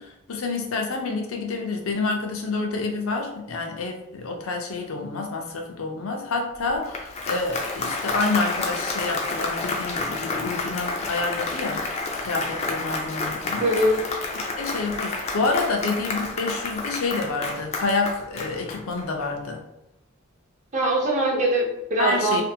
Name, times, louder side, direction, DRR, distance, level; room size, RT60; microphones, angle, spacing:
voice 1, 0.0-11.8 12.2-13.7 14.6-19.6 22.0-22.4, left 3 dB, 80° left, 2 dB, 0.5 m, -28 dB
Applause, 6.7-19.2, left 3 dB, 30° left, 0.4 m, -30 dB
voice 2, 13.6-14.0 20.7-22.4, right 1 dB, 35° right, -3 dB, 0.6 m, -22 dB
2.6 x 2.5 x 2.7 m, 0.90 s
head